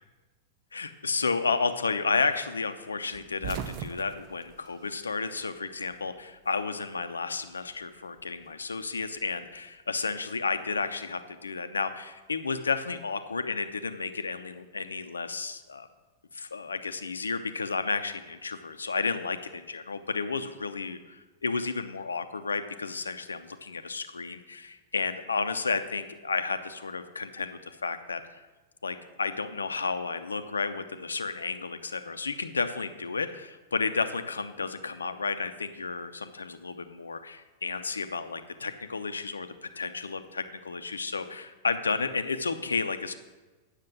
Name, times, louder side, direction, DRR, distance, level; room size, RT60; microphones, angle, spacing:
voice 1, 0.7-15.9 16.3-28.4 28.8-43.1, left 4 dB, 80° left, 10 dB, 0.7 m, -32 dB
sound 1, 3.1-5.6 5.9-7.0 8.2-9.7, right 7 dB, 45° right, 0.8 m, -41 dB
9.5 x 6.6 x 6.1 m, 1.2 s
figure-of-eight pair, 95°, 0 cm